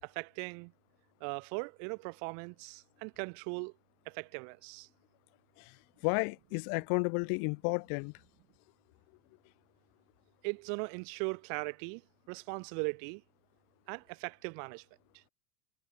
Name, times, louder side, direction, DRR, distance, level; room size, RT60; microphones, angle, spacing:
voice 1, 0.0-0.7 1.2-3.7 4.1-4.9 10.4-12.0 12.3-13.2 13.9-14.8 15.1-15.2, right 40 dB or more, 60° right, 4.6 m, -39 dB
voice 2, 6.0-8.1, left 40 dB or more, 60° left, 7.5 m, -32 dB
supercardioid pair, 130°, 30 cm